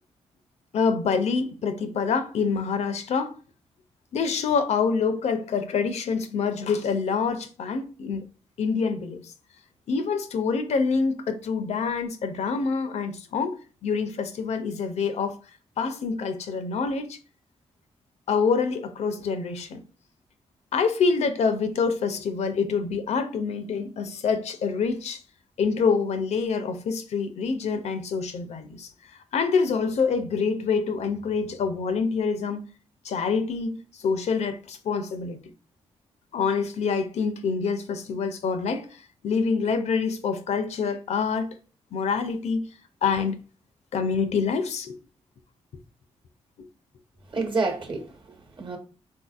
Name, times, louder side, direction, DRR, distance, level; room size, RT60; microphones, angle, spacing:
voice 1, 0.7-3.4 4.1-8.2 8.6-9.3 9.9-15.4 15.8-17.2 18.3-19.8 20.7-25.2 25.6-32.6 33.0-35.4 36.3-38.9 39.2-41.5 41.9-42.6 43.0-43.4 43.9-44.9, left 5 dB, 70° left, 0.5 m, -26 dB
voice 2, 47.3-48.8, right 3 dB, 45° right, 1.1 m, -29 dB
3.8 x 2.6 x 2.3 m
cardioid pair, 65°, 12 cm